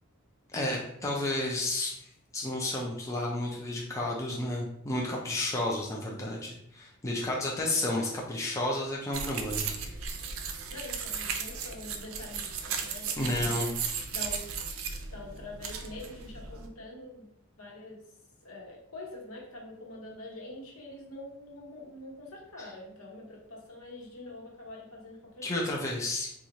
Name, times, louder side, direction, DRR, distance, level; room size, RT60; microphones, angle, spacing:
voice 1, 0.5-9.9 13.2-13.7 22.6-22.7 25.4-26.3, left 1 dB, 15° left, -2 dB, 0.5 m, -32 dB
sound 1, 9.1-16.7, right 6 dB, 70° right, 0.5 m, -36 dB
voice 2, 10.7-13.6 14.1-14.5 15.1-17.3 17.6-18.0 18.4-25.6, left 2 dB, 80° left, -2 dB, 1.0 m, -45 dB
3.0 x 2.4 x 4.0 m, 0.74 s
head